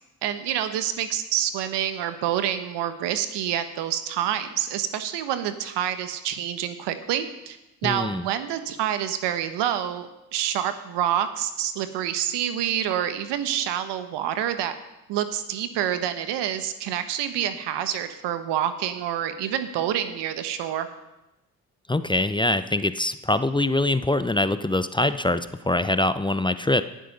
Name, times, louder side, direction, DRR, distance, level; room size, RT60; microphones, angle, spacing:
voice 1, 0.2-14.7 15.1-20.9, right 10 dB, 75° right, 10 dB, 1.2 m, -27 dB
voice 2, 7.8-8.3 21.9-26.8, left 2 dB, 10° left, 12 dB, 0.7 m, -23 dB
17.5 x 7.7 x 5.4 m, 0.95 s
hypercardioid pair, 50°, 42 cm